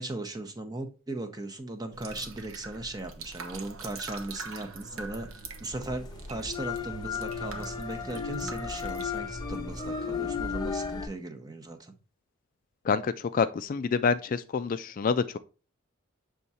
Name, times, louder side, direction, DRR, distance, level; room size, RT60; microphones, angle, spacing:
voice 1, 0.0-5.3 5.6-12.0, right 2 dB, 20° right, 0.8 m, -38 dB
sound 1, 1.9-9.1, right 4 dB, 75° right, 0.9 m, -43 dB
sound 2, 5.2-11.1, left 5 dB, 20° left, 0.7 m, -35 dB
voice 2, 12.8-15.4, left 5 dB, 40° left, 0.3 m, -27 dB
6.9 x 3.6 x 4.2 m
head